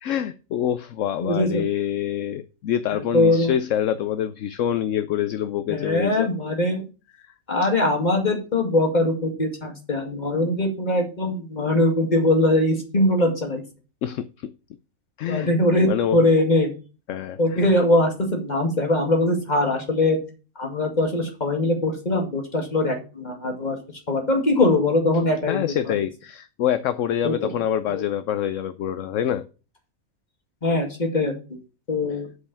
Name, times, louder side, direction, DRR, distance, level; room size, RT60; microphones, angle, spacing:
voice 1, 0.0-6.3 7.2-7.3 7.6-7.7 14.0-14.5 15.2-15.5 15.8-16.2 17.1-17.7 25.5-29.4, left 10 dB, 70° left, 12 dB, 1.0 m, -26 dB
voice 2, 1.2-1.6 2.9-3.5 5.7-6.8 7.5-13.6 15.3-16.7 17.4-20.2 20.6-23.8 24.1-25.6 27.2-27.5 27.9-28.0 30.6-31.3 31.9-32.3, left 1 dB, 30° left, 2 dB, 2.4 m, -21 dB
8.2 x 5.2 x 6.9 m, 0.33 s
omnidirectional pair, 1.4 m